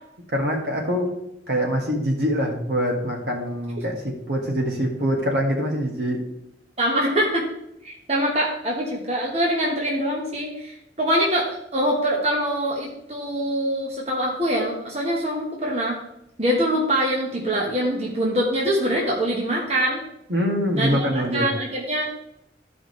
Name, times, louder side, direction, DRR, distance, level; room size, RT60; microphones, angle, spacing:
voice 1, 0.3-1.1 1.5-4.0 4.3-6.2 20.3-21.5, equal, 65° right, 0 dB, 1.9 m, -24 dB
voice 2, 6.8-7.4 7.8-16.0 16.4-20.0 20.7-22.0, equal, 35° right, -3 dB, 1.4 m, -24 dB
13.5 x 5.1 x 3.3 m, 0.82 s
head